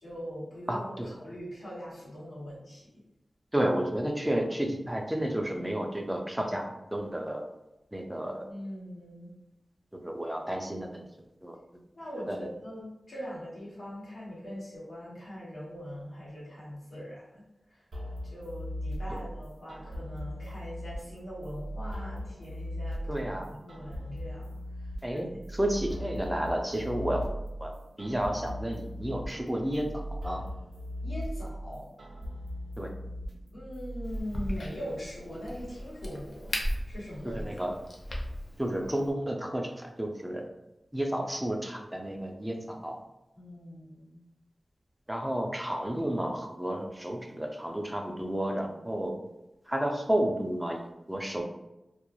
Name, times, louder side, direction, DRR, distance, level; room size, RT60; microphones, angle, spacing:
voice 1, 0.0-2.9 8.3-9.3 11.9-17.8 18.2-23.3 23.6-25.3 26.6-26.7 31.0-31.9 33.5-36.5 36.8-37.5 43.3-44.2 46.0-46.1, equal, 80° left, -8 dB, 1.2 m, -41 dB
voice 2, 0.7-1.1 3.5-7.4 7.9-8.4 10.0-11.0 11.4-11.6 12.3-12.5 19.1-19.2 23.1-23.5 25.0-25.3 25.5-27.2 27.6-27.7 28.0-30.4 32.8-32.9 37.2-37.8 38.6-40.4 40.9-43.0 45.1-49.1 49.7-51.4, right 1 dB, 10° right, 2 dB, 0.3 m, -31 dB
sound 1, 17.9-34.2, equal, 75° right, 0.4 m, -39 dB
Crack, 34.0-39.1, equal, 65° left, 0.5 m, -37 dB
2.3 x 2.0 x 3.0 m, 0.93 s
wide cardioid pair, 70°, 0 cm